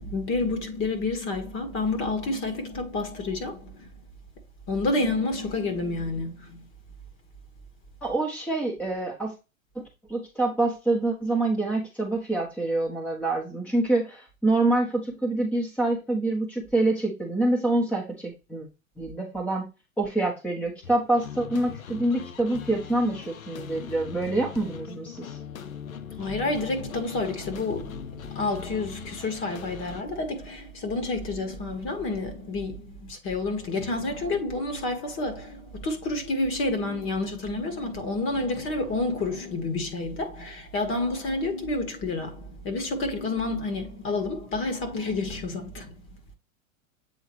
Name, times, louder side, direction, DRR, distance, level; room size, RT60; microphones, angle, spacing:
voice 1, 0.0-3.9 4.7-6.6 26.2-46.1, left 2 dB, 30° left, 1.8 m, -29 dB
voice 2, 8.0-9.3 9.7-18.6 19.0-19.6 20.0-25.4, right 2 dB, 5° left, 1.1 m, -26 dB
sound 1, 20.8-30.0, left 7 dB, 80° left, 0.9 m, -41 dB
8.1 x 3.7 x 3.1 m
hypercardioid pair, 110°, 41 cm